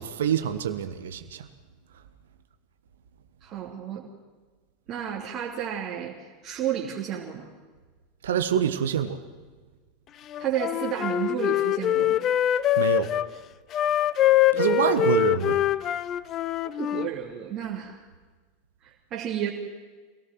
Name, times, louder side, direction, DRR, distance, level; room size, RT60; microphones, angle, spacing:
voice 1, 0.0-1.5 8.2-9.2 12.8-13.1 14.5-15.6, right 8 dB, 70° right, 9 dB, 1.5 m, -26 dB
voice 2, 3.4-4.1 4.9-7.5 10.4-12.2 14.5-15.1 16.6-18.0 19.1-19.5, right 10 dB, 40° right, -3 dB, 3.1 m, -32 dB
Wind instrument woodwind instrument, 10.3-13.3 13.7-17.1, left 12 dB, 40° left, 0.6 m, -24 dB
26.5 x 18.0 x 6.0 m, 1.4 s
figure-of-eight pair, 80°, 0 cm